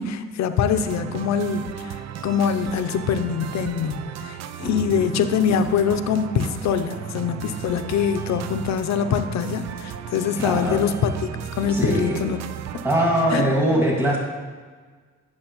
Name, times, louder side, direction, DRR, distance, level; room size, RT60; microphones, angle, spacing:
voice 1, 0.0-11.1 11.6-12.4 13.3-13.4, left 7 dB, 65° left, 9 dB, 0.6 m, -24 dB
sound 1, 0.7-13.4, right 9 dB, 60° right, 0.4 m, -35 dB
voice 2, 4.6-5.0 10.4-10.8 11.7-12.2 12.8-14.2, right 1 dB, 10° right, -3 dB, 1.8 m, -22 dB
8.6 x 6.2 x 3.0 m, 1.5 s
cardioid pair, 90°, 30 cm